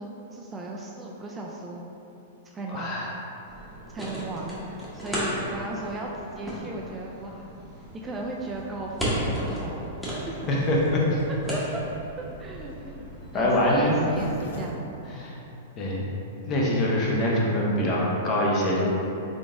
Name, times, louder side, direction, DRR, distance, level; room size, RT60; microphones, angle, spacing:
voice 1, 0.0-1.9 2.5-2.9 3.9-7.5 8.0-9.9 10.3-10.4 11.3-11.8 12.4-13.0 13.3-14.7, right 2 dB, 20° right, -2 dB, 0.3 m, -36 dB
voice 2, 2.7-3.1 10.5-11.2 13.3-14.0 15.1-15.3 15.8-16.0 16.5-18.9, left 1 dB, 35° left, -4 dB, 0.8 m, -24 dB
sound 1, 3.5-14.4, equal, 5° left, 1.0 m, -35 dB
Zipper (clothing), 11.6-15.9 16.4-16.5 16.7-16.8 17.0-17.3, left 1 dB, 85° left, 0.5 m, -43 dB
3.8 x 3.5 x 2.5 m, 2.9 s
hypercardioid pair, 125°, 0 cm